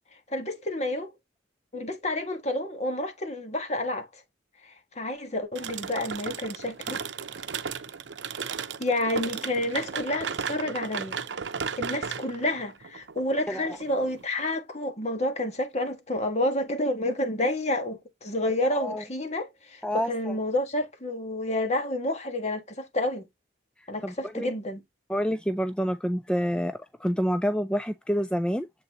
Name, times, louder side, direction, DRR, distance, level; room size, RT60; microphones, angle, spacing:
voice 1, 0.3-1.1 1.7-4.1 4.6-7.0 8.8-11.2 11.8-23.2 23.9-24.8, left 1 dB, 35° left, 1.6 m, -29 dB
sound 1, 5.6-14.2, right 6 dB, 75° right, 0.7 m, -35 dB
voice 2, 18.7-19.0 19.8-20.4 24.0-24.5 25.1-28.7, equal, 5° left, 0.3 m, -28 dB
7.6 x 4.1 x 3.0 m
head